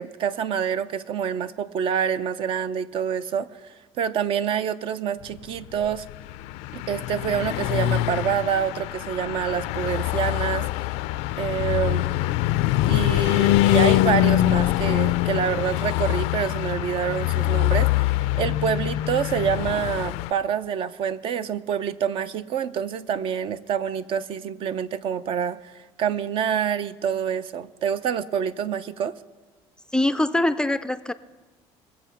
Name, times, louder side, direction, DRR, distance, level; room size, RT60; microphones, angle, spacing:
voice 1, 0.0-6.1 6.7-10.7 11.4-12.1 12.9-25.7 26.0-29.2, right 8 dB, 55° right, 14 dB, 0.6 m, -27 dB
Car passing by / Truck, 5.9-20.3, left 16 dB, 90° left, 0.4 m, -24 dB
voice 2, 29.9-31.1, left 1 dB, 5° left, 11 dB, 0.3 m, -23 dB
21.0 x 7.4 x 5.8 m, 1.3 s
cardioid pair, 130°, 11 cm